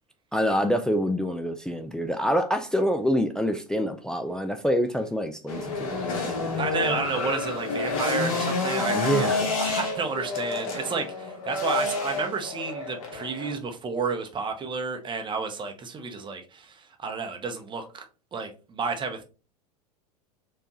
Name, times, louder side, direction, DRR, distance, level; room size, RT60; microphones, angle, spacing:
voice 1, 0.3-6.6 8.9-9.5, equal, 5° left, 0.4 m, -26 dB
sound 1, 5.5-13.5, left 3 dB, 60° left, 1.2 m, -29 dB
voice 2, 6.6-18.0 18.3-19.2, right 5 dB, 25° right, 0.9 m, -31 dB
4.6 x 2.5 x 3.0 m
figure-of-eight pair, 85°, 20 cm